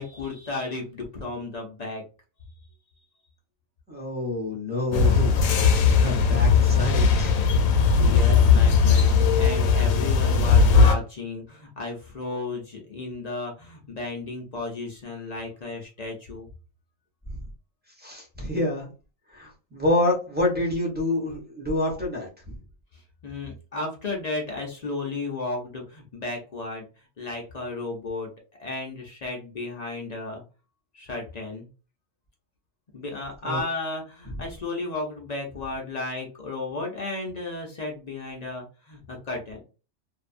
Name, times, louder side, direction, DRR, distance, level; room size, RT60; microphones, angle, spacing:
voice 1, 0.0-2.0 8.0-16.5 22.9-26.9 27.2-28.3 28.6-30.4 30.9-31.7 32.9-39.6, left 3 dB, 50° left, 0 dB, 0.5 m, -34 dB
voice 2, 3.9-5.4 5.8-7.4 18.0-18.9 19.3-22.3 33.4-33.6, left 2 dB, 10° right, -4 dB, 0.7 m, -27 dB
sound 1, 4.9-10.9, left 5 dB, 85° left, 1.0 m, -18 dB
2.6 x 2.2 x 2.4 m, 0.33 s
omnidirectional pair, 1.4 m